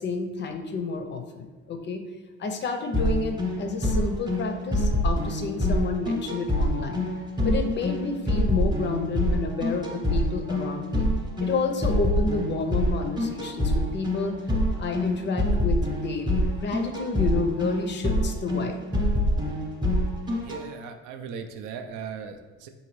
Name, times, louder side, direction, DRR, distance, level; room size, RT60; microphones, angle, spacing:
voice 1, 0.0-2.0 2.4-7.0 7.4-11.1 11.4-14.4 14.8-18.8, left 4 dB, 35° left, 5 dB, 0.5 m, -30 dB
sound 1, 2.9-20.6, left 1 dB, 15° right, 0.8 m, -26 dB
voice 2, 20.4-22.7, right 6 dB, 75° right, 7 dB, 0.5 m, -38 dB
3.9 x 2.6 x 3.1 m, 1.2 s
supercardioid pair, 85°, 32 cm